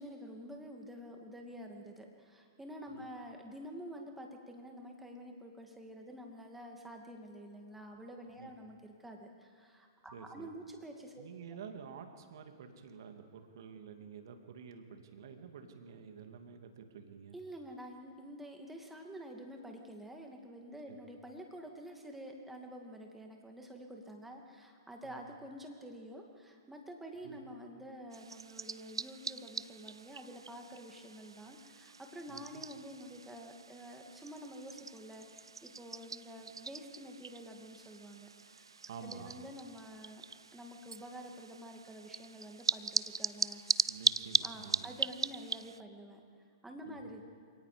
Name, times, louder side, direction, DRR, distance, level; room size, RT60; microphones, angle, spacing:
voice 1, 0.0-11.3 17.3-38.7 39.0-40.2 40.5-43.9 44.4-46.2 46.6-47.2, equal, 5° right, 2 dB, 2.4 m, -48 dB
voice 2, 10.1-10.5 11.2-17.4 20.9-21.0 25.0-25.2 27.2-27.4 32.3-32.6 38.9-39.4 43.9-44.9 46.9-47.1, right 6 dB, 60° right, 5 dB, 2.3 m, -50 dB
sound 1, 28.1-45.8, right 4 dB, 90° right, 0.4 m, -39 dB
28.0 x 18.0 x 5.2 m, 2.1 s
hypercardioid pair, 115°, 2 cm